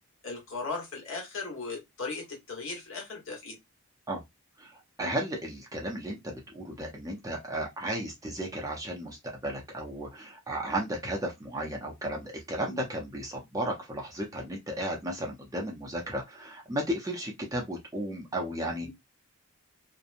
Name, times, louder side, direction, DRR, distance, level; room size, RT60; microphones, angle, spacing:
voice 1, 0.2-3.6 12.6-12.8 18.8-18.9, left 3 dB, 60° left, 1.2 m, -37 dB
voice 2, 5.0-18.9, right 1 dB, 15° right, 0.5 m, -34 dB
2.8 x 2.1 x 2.5 m
head